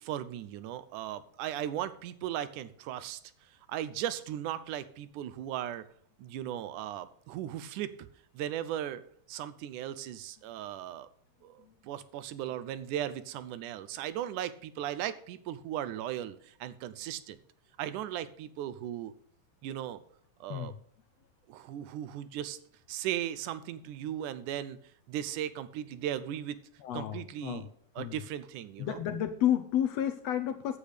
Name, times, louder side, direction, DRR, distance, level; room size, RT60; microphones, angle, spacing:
voice 1, 0.0-3.2 3.7-5.9 6.2-8.1 8.3-9.0 9.3-11.1 11.4-17.4 17.8-19.1 19.6-20.0 20.4-20.7 21.5-22.6 22.9-24.8 25.1-26.6 26.9-27.6 28.0-29.0, right 11 dB, 75° right, 14 dB, 2.1 m, -37 dB
voice 2, 26.8-27.7 28.0-28.2 28.8-30.8, left 10 dB, 75° left, 8 dB, 1.5 m, -31 dB
10.0 x 8.5 x 5.1 m, 0.62 s
omnidirectional pair, 3.8 m